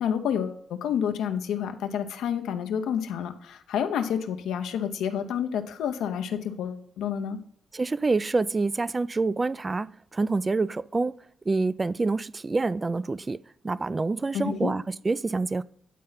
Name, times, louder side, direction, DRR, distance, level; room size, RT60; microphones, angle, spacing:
voice 1, 0.0-7.4 14.3-14.7, left 8 dB, 80° left, 0.7 m, -29 dB
voice 2, 7.7-11.2 11.5-13.4 13.6-15.6, right 3 dB, 35° right, 0.3 m, -27 dB
9.2 x 4.2 x 3.9 m
supercardioid pair, 45°, 0 cm